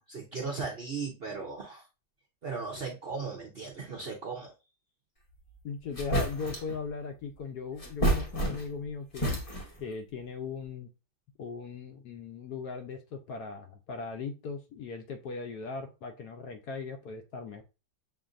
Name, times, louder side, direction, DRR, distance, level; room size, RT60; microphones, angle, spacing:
voice 1, 0.1-1.8 2.4-4.5, right 4 dB, 55° right, 0.6 m, -37 dB
sound 1, 5.5-5.6 5.9-6.8 7.8-8.8 9.1-9.9, right 1 dB, 35° left, 0.5 m, -30 dB
voice 2, 5.6-9.3 9.8-10.9 11.4-17.6, left 4 dB, 70° left, 1.0 m, -38 dB
7.0 x 2.6 x 2.5 m
omnidirectional pair, 2.1 m